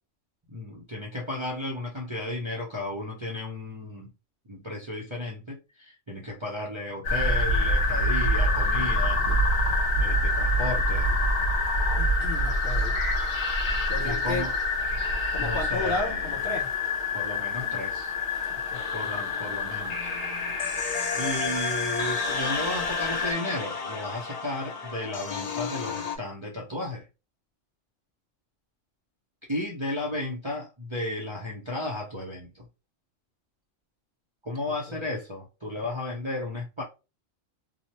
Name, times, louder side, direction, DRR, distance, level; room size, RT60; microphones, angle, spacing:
voice 1, 0.5-4.1 4.5-9.3 10.0-11.1 14.0-14.5 15.4-16.6 17.1-18.1 18.9-20.1 21.1-27.1 29.5-32.7 34.4-36.8, left 1 dB, 35° right, 0.5 m, -34 dB
sound 1, 7.0-23.3, left 1 dB, 65° left, 1.0 m, -26 dB
voice 2, 12.0-13.0 13.9-14.4 15.3-16.7 18.5-18.9 34.7-34.8 35.8-35.9, left 3 dB, 50° left, 0.8 m, -33 dB
sound 2, 18.7-26.2, left 5 dB, 80° left, 0.3 m, -34 dB
3.0 x 2.0 x 2.9 m
omnidirectional pair, 1.3 m